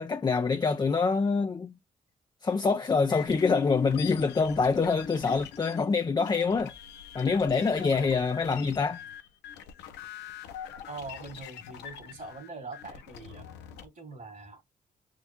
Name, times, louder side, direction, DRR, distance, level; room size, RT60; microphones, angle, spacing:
voice 1, 0.0-1.7 2.4-6.7 7.1-9.0, left 4 dB, 25° left, 0.4 m, -25 dB
sound 1, 3.1-13.9, left 8 dB, 90° left, 0.5 m, -42 dB
voice 2, 10.9-13.5 13.8-14.6, right 3 dB, 50° right, 1.8 m, -43 dB
3.6 x 2.3 x 2.8 m
supercardioid pair, 45°, 18 cm